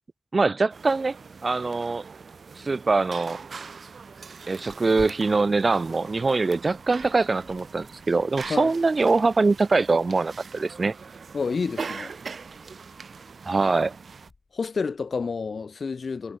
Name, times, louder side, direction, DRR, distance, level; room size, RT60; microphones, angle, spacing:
voice 1, 0.3-1.2 1.4-2.0 2.6-3.4 4.5-10.9 13.4-13.9, right 3 dB, 45° right, 1.0 m, -23 dB
sound 1, 0.7-14.3, right 5 dB, 75° right, 2.2 m, -42 dB
Tearing, 4.5-15.6, left 3 dB, 50° left, 4.9 m, -54 dB
voice 2, 11.3-12.1 14.5-16.4, left 5 dB, 70° left, 0.8 m, -29 dB
wide cardioid pair, 110°, 0 cm